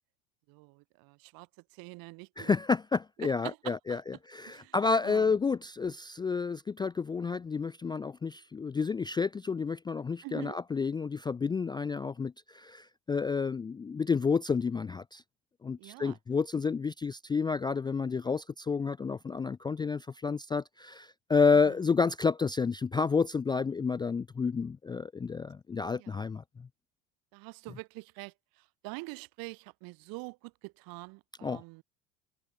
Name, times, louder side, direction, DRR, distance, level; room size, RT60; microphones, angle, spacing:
voice 1, 0.5-1.5 1.7-2.5 3.2-4.0 4.5-4.7 5.0-5.4 10.2-10.6 15.8-16.2 21.6-21.7 26.0-26.2 27.3-31.8, right 26 dB, 60° right, 5.1 m, -45 dB
voice 2, 2.4-15.2 15.6-26.4 31.4-31.6, left 5 dB, 10° left, 0.4 m, -30 dB
hypercardioid pair, 70°, 40 cm